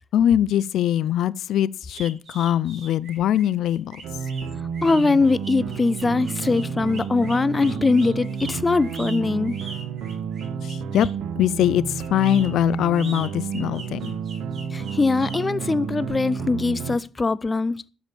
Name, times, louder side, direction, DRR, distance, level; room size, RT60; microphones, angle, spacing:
voice 1, 0.1-4.0 10.6-11.1 11.4-14.2, left 11 dB, 80° left, 0.5 m, -22 dB
sound 1, 1.9-11.2 12.0-15.4, right 3 dB, 45° right, 7.2 m, -42 dB
sound 2, 4.0-17.0, right 7 dB, 80° right, 1.1 m, -31 dB
voice 2, 4.8-9.5 14.7-17.9, left 3 dB, 25° left, 0.6 m, -22 dB
12.5 x 7.1 x 6.8 m
cardioid pair, 90°, 0 cm